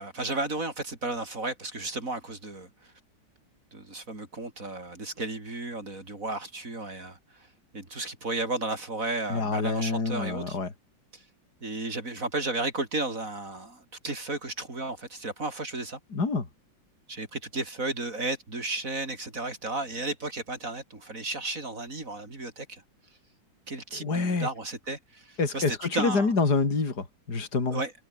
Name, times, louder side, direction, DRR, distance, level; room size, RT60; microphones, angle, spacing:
voice 1, 0.0-2.9 3.7-7.5 7.7-10.6 11.1-11.2 11.6-16.0 17.1-22.8 23.7-26.3 27.7-27.9, right 2 dB, 45° right, 4.8 m, -33 dB
voice 2, 9.3-10.7 16.1-16.4 24.0-24.5 25.4-27.8, left 4 dB, 55° left, 4.1 m, -27 dB
omnidirectional pair, 2.1 m